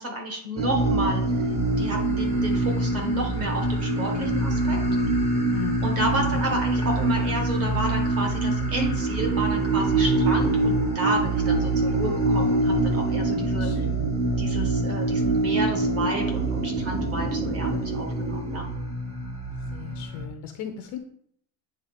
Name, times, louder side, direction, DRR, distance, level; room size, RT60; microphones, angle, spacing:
voice 1, 0.0-1.5 1.8-4.8 5.8-13.9 14.4-18.7, right 1 dB, 30° right, 2 dB, 1.4 m, -31 dB
sound 1, 0.6-20.3, right 2 dB, 15° right, 0.7 m, -25 dB
voice 2, 5.4-5.8 6.2-6.3 13.3-14.0 19.7-21.0, left 9 dB, 40° left, 5 dB, 0.4 m, -37 dB
8.9 x 3.4 x 4.1 m, 0.67 s
cardioid pair, 165°, 48 cm